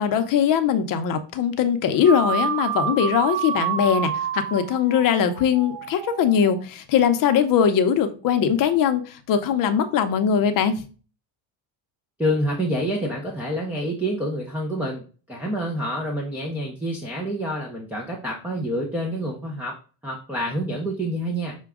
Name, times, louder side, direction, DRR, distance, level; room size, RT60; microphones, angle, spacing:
voice 1, 0.0-10.8, left 8 dB, 45° left, 8 dB, 0.6 m, -21 dB
sound 1, 2.0-6.6, right 7 dB, 80° right, 0.8 m, -28 dB
voice 2, 12.2-19.7 20.0-21.6, equal, 5° right, -1 dB, 0.4 m, -27 dB
5.9 x 2.2 x 3.5 m, 0.37 s
cardioid pair, 135°, 48 cm